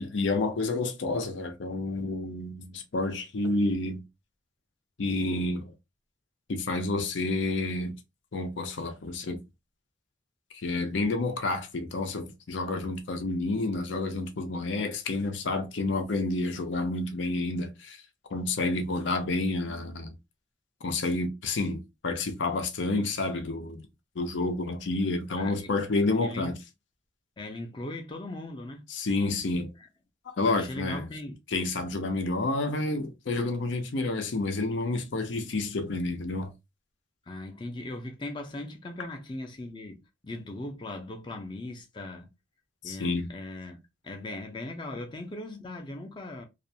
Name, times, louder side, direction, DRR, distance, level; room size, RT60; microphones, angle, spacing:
voice 1, 0.0-4.0 5.0-5.7 6.5-7.9 8.3-9.4 10.5-18.0 18.3-20.1 20.8-23.8 24.2-26.6 28.9-29.7 30.4-31.1 31.5-36.5 42.8-43.3, left 2 dB, 80° left, 0.6 m, -29 dB
voice 2, 25.3-25.7 26.2-26.6 27.4-28.9 29.8-29.9 30.4-31.4 37.3-42.3 42.8-43.8 44.0-46.4, left 2 dB, 25° left, 0.4 m, -39 dB
2.4 x 2.1 x 2.6 m
head